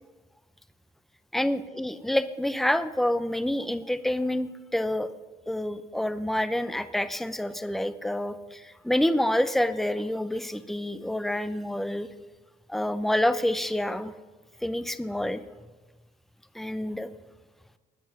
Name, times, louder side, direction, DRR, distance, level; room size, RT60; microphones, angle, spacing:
voice 1, 1.3-5.1 5.5-12.1 12.7-14.1 14.6-15.4 16.5-17.1, left 1 dB, ahead, 12 dB, 0.6 m, -28 dB
20.0 x 7.2 x 6.1 m, 1.2 s
cardioid pair, 110°, 17 cm